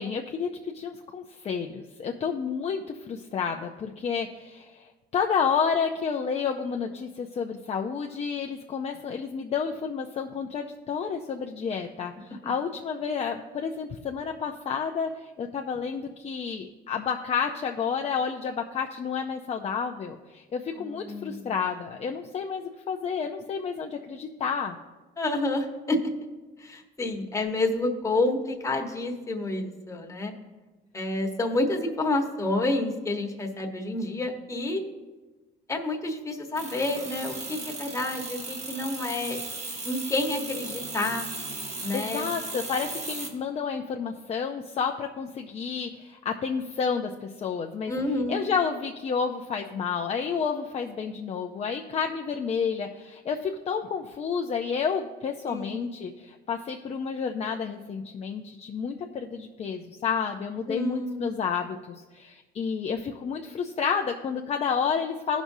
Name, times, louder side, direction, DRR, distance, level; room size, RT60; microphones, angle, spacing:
voice 1, 0.0-24.8 41.9-47.9 48.3-65.4, left 6 dB, 40° left, 3 dB, 0.6 m, -30 dB
voice 2, 20.8-21.5 25.2-26.1 26.6-30.3 30.9-34.8 35.7-39.4 39.8-41.3 41.8-42.3 47.9-48.4 55.5-56.0 60.7-61.3, left 2 dB, 20° left, 2 dB, 1.2 m, -29 dB
sound 1, 36.6-43.3, right 3 dB, 40° right, 1.5 m, -36 dB
16.0 x 6.1 x 2.7 m, 1.2 s
cardioid pair, 110°, 17 cm